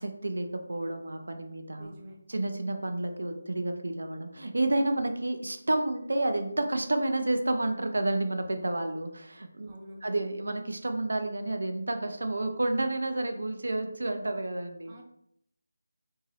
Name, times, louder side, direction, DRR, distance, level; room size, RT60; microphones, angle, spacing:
voice 1, 0.0-2.0 2.3-9.7 10.0-14.9, right 2 dB, 85° right, 6 dB, 0.5 m, -30 dB
voice 2, 1.8-2.2 9.6-10.0 14.9-15.0, equal, 15° right, -2 dB, 0.3 m, -48 dB
2.6 x 2.4 x 3.2 m, 0.72 s
figure-of-eight pair, 180°, 0 cm